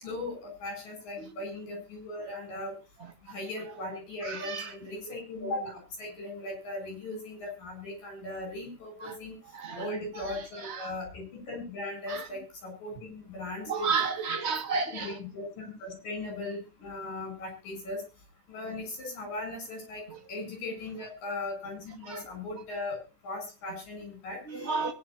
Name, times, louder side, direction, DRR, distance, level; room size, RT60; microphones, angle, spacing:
voice 1, 0.0-2.7 3.2-9.3 9.8-14.1 14.7-18.0 18.5-20.0 20.3-24.4, left 2 dB, 55° left, 4 dB, 9.4 m, -38 dB
voice 2, 4.2-4.7 9.0-9.2 9.5-10.2 10.6-10.9 12.1-12.2 13.7-15.2 20.1-20.2 22.0-22.2 24.5-24.9, right 5 dB, 60° right, 1 dB, 0.6 m, -32 dB
23.0 x 10.5 x 2.8 m, 0.33 s
omnidirectional pair, 4.6 m